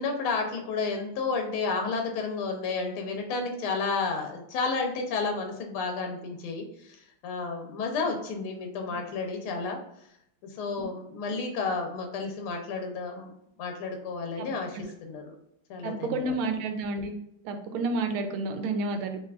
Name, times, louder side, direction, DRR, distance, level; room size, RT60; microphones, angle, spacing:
voice 1, 0.0-9.8 10.6-13.3 13.6-15.3 15.7-16.4, left 4 dB, 85° left, 3 dB, 1.7 m, -31 dB
voice 2, 15.8-17.1 17.4-19.2, right 3 dB, 85° right, 5 dB, 1.5 m, -30 dB
5.7 x 2.6 x 2.4 m, 0.76 s
omnidirectional pair, 2.3 m